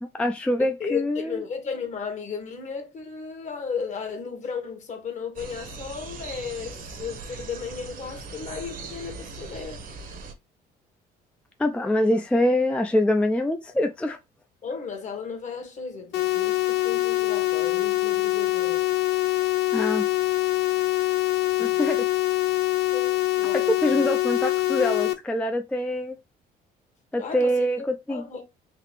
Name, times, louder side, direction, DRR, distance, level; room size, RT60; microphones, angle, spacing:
voice 1, 0.0-1.4 11.6-14.2 19.7-20.1 21.6-22.0 23.5-26.2 27.1-28.2, left 1 dB, 5° left, 0.4 m, -24 dB
voice 2, 0.6-9.8 14.6-18.9 21.6-21.9 22.9-24.1 27.2-28.5, left 6 dB, 45° left, 1.3 m, -35 dB
sound 1, 5.4-10.3, right 4 dB, 55° right, 0.9 m, -40 dB
sound 2, 16.1-25.1, left 18 dB, 85° left, 0.6 m, -24 dB
3.8 x 2.7 x 3.1 m
cardioid pair, 110°, 17 cm